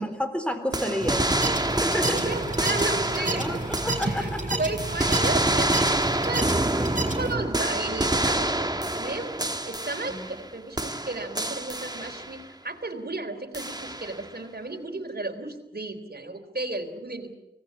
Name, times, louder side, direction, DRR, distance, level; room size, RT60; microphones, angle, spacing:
voice 1, 0.0-2.4 3.3-4.6 6.8-6.9 10.1-10.3, equal, 5° left, 8 dB, 3.8 m, -31 dB
sound 1, 0.7-4.4 4.8-10.5 10.8-12.4 13.5-14.3, right 1 dB, 25° right, 1.5 m, -27 dB
sound 2, 1.0-7.4, right 2 dB, 45° right, 4.0 m, -31 dB
voice 2, 2.1-3.6 4.0-8.7 8.9-17.4, right 2 dB, 65° right, 4 dB, 3.7 m, -34 dB
25.0 x 18.5 x 8.5 m, 1.0 s
wide cardioid pair, 50°, 18 cm